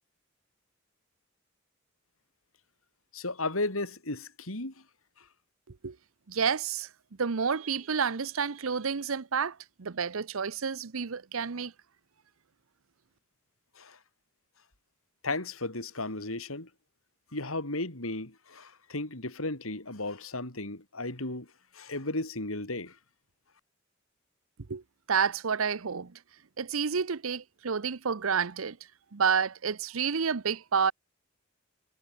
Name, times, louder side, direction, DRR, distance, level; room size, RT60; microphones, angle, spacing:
voice 1, 3.1-4.8 5.2-5.3 13.7-14.0 15.2-16.7 17.3-23.0, left 2 dB, 90° left, 4.9 m, -35 dB
voice 2, 6.3-6.9 7.2-11.7 24.7-24.8 25.1-26.2 26.6-28.8 29.1-30.9, right 6 dB, 85° right, 0.8 m, -29 dB
head